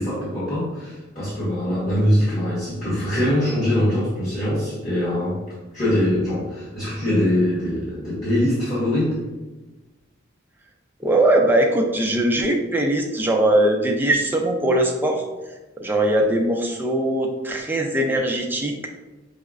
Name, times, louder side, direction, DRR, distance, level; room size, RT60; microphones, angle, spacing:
voice 1, 0.0-5.4 5.7-9.2, left 1 dB, 30° left, -11 dB, 1.3 m, -22 dB
voice 2, 11.0-15.2 15.8-18.9, right 1 dB, 10° right, 1 dB, 0.4 m, -20 dB
5.5 x 2.1 x 2.4 m, 1.1 s
head